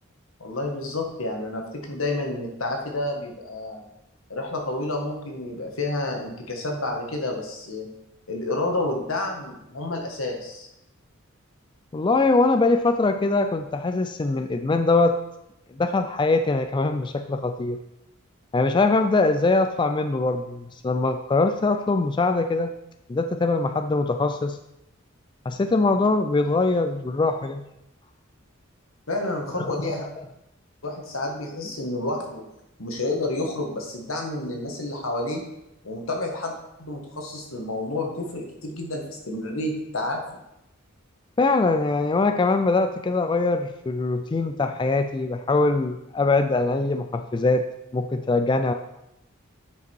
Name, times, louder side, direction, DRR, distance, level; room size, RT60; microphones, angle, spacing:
voice 1, 0.4-3.8 4.3-7.9 8.3-10.7 29.1-30.0 30.8-32.4 32.8-35.4 35.8-36.5 36.8-40.2, left 2 dB, 80° left, 2 dB, 1.7 m, -29 dB
voice 2, 11.9-15.1 15.8-17.8 18.5-22.7 23.1-24.6 25.5-27.6 29.6-30.1 41.4-47.6 47.9-48.7, left 3 dB, 25° left, 7 dB, 0.3 m, -22 dB
9.5 x 5.1 x 4.5 m, 0.86 s
head